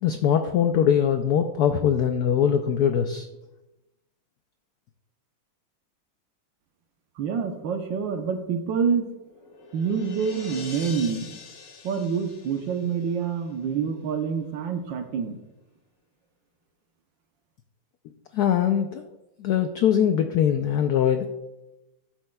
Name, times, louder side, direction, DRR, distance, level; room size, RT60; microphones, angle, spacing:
voice 1, 0.0-3.3 18.3-19.0 19.4-21.3, left 9 dB, 85° left, 7 dB, 0.8 m, -22 dB
voice 2, 7.2-9.1 9.7-11.4 11.8-15.4, right 6 dB, 70° right, 5 dB, 1.5 m, -27 dB
sound 1, 9.1-13.6, left 4 dB, 50° left, 1.6 m, -44 dB
13.0 x 7.4 x 2.3 m, 1.0 s
omnidirectional pair, 2.2 m